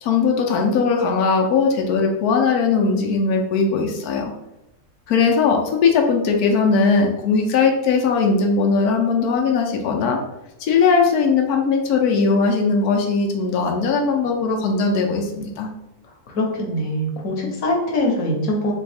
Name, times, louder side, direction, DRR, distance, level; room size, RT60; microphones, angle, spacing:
voice 1, 0.0-4.3 5.1-10.2 10.6-15.7, left 4 dB, 85° left, 2 dB, 1.2 m, -19 dB
voice 2, 16.3-18.7, left 1 dB, 65° left, 0 dB, 1.3 m, -23 dB
3.5 x 3.3 x 3.3 m, 0.91 s
omnidirectional pair, 1.6 m